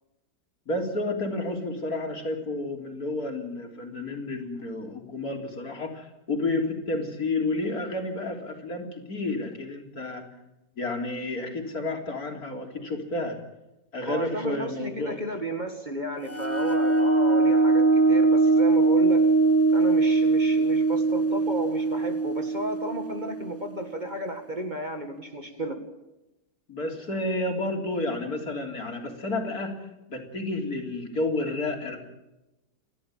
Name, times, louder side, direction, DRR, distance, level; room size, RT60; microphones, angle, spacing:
voice 1, 0.7-10.2 10.8-13.4 13.9-15.2 26.7-32.0, left 2 dB, 60° left, 3 dB, 4.0 m, -31 dB
voice 2, 14.0-19.3 19.7-25.8, right 1 dB, 25° right, 5 dB, 2.2 m, -33 dB
sound 1, 16.3-23.7, right 3 dB, 15° left, 0.4 m, -21 dB
30.0 x 12.5 x 8.6 m, 0.95 s
omnidirectional pair, 1.8 m